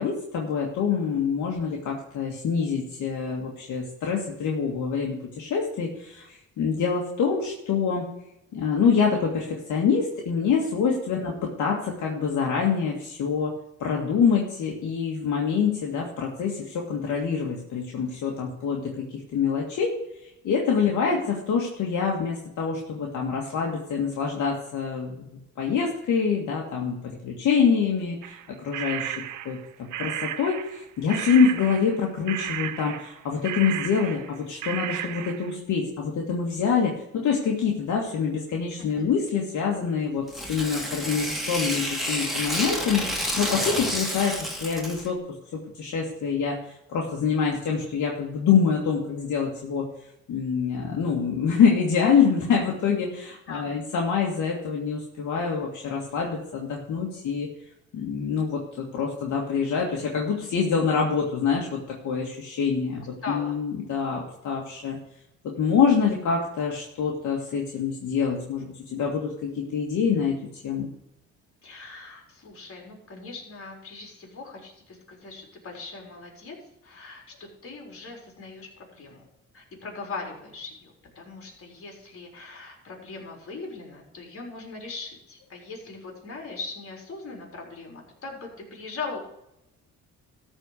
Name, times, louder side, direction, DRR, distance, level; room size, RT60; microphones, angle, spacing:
voice 1, 0.0-8.1 8.5-13.5 13.8-19.9 20.4-28.4 28.6-29.1 29.5-45.2 45.5-49.9 50.3-57.5 57.9-65.0 65.4-70.9, left 6 dB, 70° left, -1 dB, 2.0 m, -26 dB
voice 2, 21.0-21.4 38.8-39.1 53.5-53.8 63.0-63.6 71.6-76.6 76.8-79.2 79.5-89.2, left 3 dB, 45° left, 0 dB, 4.2 m, -40 dB
sound 1, 28.2-30.8 31.1-34.4 34.6-35.5, right 11 dB, 80° right, 0.8 m, -34 dB
Tearing, 40.3-45.1, equal, ahead, 2.5 m, -29 dB
13.0 x 4.5 x 8.2 m, 0.84 s
cardioid pair, 90°, 30 cm